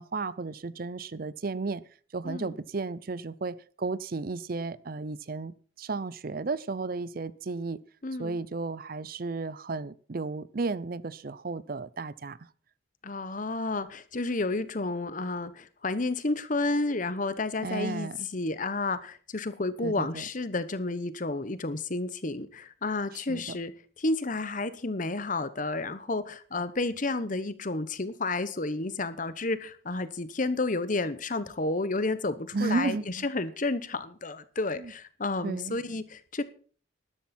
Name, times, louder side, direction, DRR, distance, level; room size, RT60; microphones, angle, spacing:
voice 1, 0.0-1.8 2.1-7.8 8.2-12.4 17.6-18.3 19.8-20.2 23.1-23.6 32.5-33.3 34.8-34.9 35.4-35.8, right 3 dB, 45° right, 0.5 m, -33 dB
voice 2, 8.0-8.4 13.0-23.7 24.0-36.4, left 2 dB, 40° left, 1.0 m, -31 dB
13.0 x 12.0 x 4.4 m
head